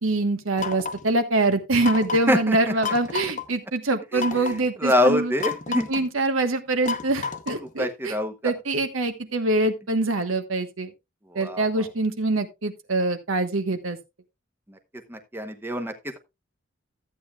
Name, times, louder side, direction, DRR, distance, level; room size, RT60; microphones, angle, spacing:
voice 1, 0.0-5.3 5.7-8.2 8.4-10.9 11.3-14.0, right 2 dB, 80° right, 1.3 m, -24 dB
sound 1, 0.6-1.1 1.8-2.3 2.8-3.4 4.2-4.6 5.4-6.1 6.9-7.7, left 5 dB, 40° left, 0.8 m, -31 dB
voice 2, 4.1-4.6 4.8-5.9 7.8-8.5 11.3-11.6 14.7-14.8 15.1-16.2, left 1 dB, 10° right, 0.9 m, -25 dB
13.5 x 8.7 x 2.3 m
head